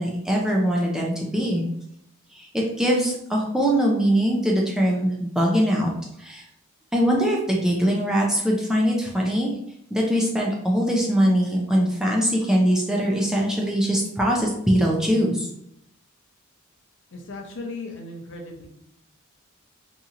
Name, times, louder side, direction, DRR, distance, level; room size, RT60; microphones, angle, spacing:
voice 1, 0.0-1.7 2.3-5.9 6.2-6.4 6.9-9.5 9.9-15.5, equal, 5° right, -2 dB, 0.4 m, -22 dB
voice 2, 17.1-18.7, left 2 dB, 60° left, 1 dB, 0.6 m, -36 dB
2.8 x 2.7 x 2.4 m, 0.75 s
head